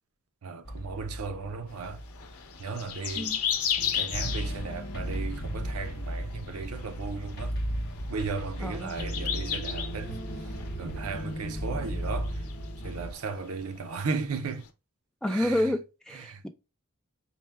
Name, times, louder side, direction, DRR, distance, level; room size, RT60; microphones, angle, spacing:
voice 1, 0.4-2.0 2.6-3.3 3.9-7.5 8.1-10.2 10.8-12.4 12.8-14.7 15.3-15.7 16.1-16.4, right 4 dB, 80° right, 0.5 m, -36 dB
sound 1, 0.6-13.1, equal, 45° left, 0.7 m, -35 dB
sound 2, 1.7-14.7, left 8 dB, 85° left, 0.7 m, -37 dB
voice 2, 8.6-8.9 15.2-16.5, left 1 dB, 5° left, 0.3 m, -29 dB
4.3 x 2.2 x 3.3 m
head